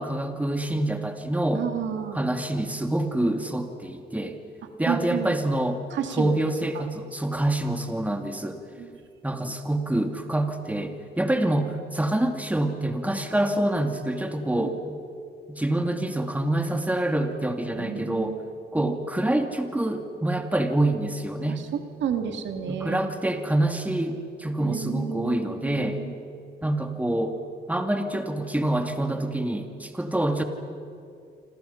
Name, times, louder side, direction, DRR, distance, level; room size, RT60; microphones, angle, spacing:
voice 1, 0.0-1.7 2.1-4.4 4.8-5.8 6.1-8.6 9.2-15.0 15.5-18.4 18.7-21.7 22.7-26.0 26.6-27.4 27.7-30.4, right 1 dB, 10° right, 5 dB, 2.4 m, -26 dB
voice 2, 1.5-2.3 4.9-5.4 5.9-6.4 6.7-6.8 8.8-8.9 14.6-14.8 17.7-18.4 18.8-18.9 21.5-21.6 22.0-23.0 24.6-26.1, right 8 dB, 85° right, 6 dB, 2.3 m, -31 dB
27.5 x 27.0 x 5.8 m, 2.5 s
cardioid pair, 95°, 18 cm